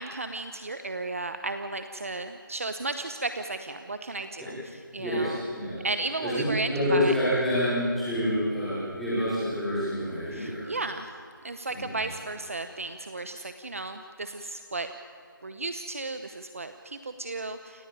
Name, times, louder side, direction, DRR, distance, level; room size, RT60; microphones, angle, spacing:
voice 1, 0.0-5.4 5.8-7.1 10.3-11.1 11.4-14.9 15.4-17.9, right 3 dB, 40° right, 8 dB, 0.9 m, -34 dB
voice 2, 5.0-5.8 6.2-6.4 6.7-10.6 11.7-12.0, left 1 dB, ahead, -14 dB, 4.3 m, -27 dB
28.5 x 12.5 x 9.0 m, 2.7 s
figure-of-eight pair, 175°, 12 cm